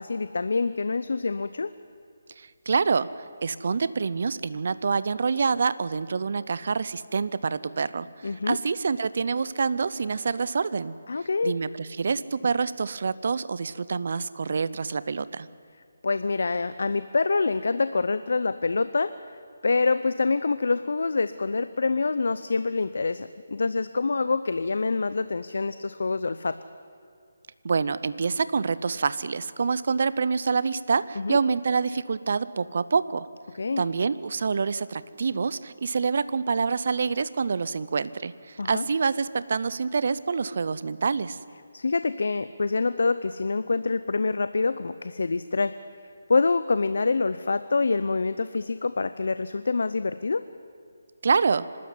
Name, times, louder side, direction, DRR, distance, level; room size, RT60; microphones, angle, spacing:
voice 1, 0.0-1.7 8.2-8.6 11.1-11.6 16.0-19.1 19.6-26.5 31.2-31.4 33.5-33.8 38.6-38.8 41.7-45.7 46.3-50.4, left 4 dB, 70° left, 13 dB, 0.7 m, -26 dB
voice 2, 2.4-3.1 3.4-10.9 11.4-15.5 27.6-33.3 33.8-41.4 51.2-51.7, right 5 dB, 55° right, 16 dB, 0.7 m, -26 dB
26.0 x 13.0 x 9.6 m, 2.5 s
figure-of-eight pair, 160°, 0 cm